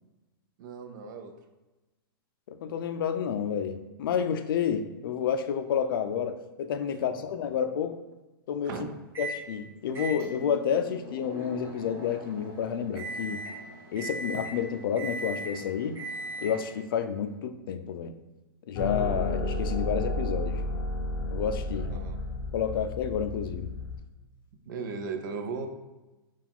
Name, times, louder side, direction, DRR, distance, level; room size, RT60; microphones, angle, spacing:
voice 1, 0.6-1.3 8.6-8.9 21.9-22.2 24.7-25.7, right 5 dB, 55° right, 6 dB, 0.5 m, -36 dB
voice 2, 2.5-8.0 8.5-8.7 9.2-13.4 13.9-16.0 16.4-18.1 18.7-20.6 21.3-21.9 22.5-23.7, left 7 dB, 65° left, 9 dB, 0.4 m, -30 dB
Microwave oven, 9.1-9.4 9.9-16.8, right 1 dB, 20° right, 1.0 m, -39 dB
sound 1, 18.7-24.0, left 2 dB, 25° left, 0.7 m, -32 dB
4.6 x 2.4 x 3.5 m, 1.1 s
hypercardioid pair, 155°, 12 cm